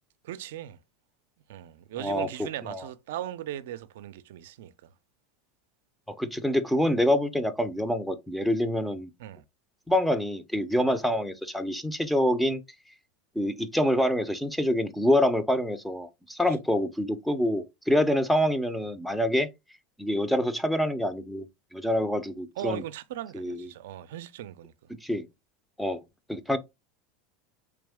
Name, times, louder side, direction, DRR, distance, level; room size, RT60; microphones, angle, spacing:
voice 1, 0.2-0.8 1.5-4.9 9.2-9.4 10.8-10.9 16.4-16.6 22.6-24.7, right 12 dB, 80° right, 0.4 m, -38 dB
voice 2, 6.2-9.1 9.9-12.6 13.4-19.5 20.0-21.5 21.7-22.8 23.3-23.7 25.0-25.2 25.8-26.0 26.3-26.6, left 1 dB, ahead, 0.5 m, -26 dB
3.5 x 3.1 x 3.4 m
supercardioid pair, 130°, 0 cm